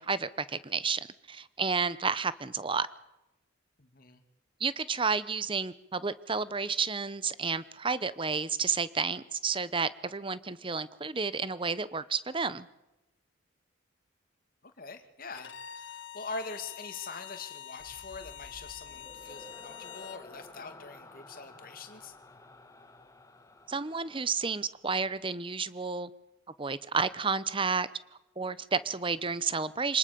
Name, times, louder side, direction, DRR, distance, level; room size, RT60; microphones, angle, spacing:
voice 1, 0.0-2.9 4.6-12.7 23.7-26.1 26.6-27.9 28.4-30.0, right 5 dB, 25° right, 17 dB, 0.9 m, -31 dB
voice 2, 3.8-4.2 14.6-22.1, left 4 dB, 45° left, 7 dB, 2.5 m, -43 dB
Bowed string instrument, 15.4-20.3, left 9 dB, 60° left, 1.4 m, -46 dB
sound 1, 17.8-25.2, left 1 dB, 15° left, 1.7 m, -53 dB
25.5 x 19.5 x 6.9 m, 0.93 s
head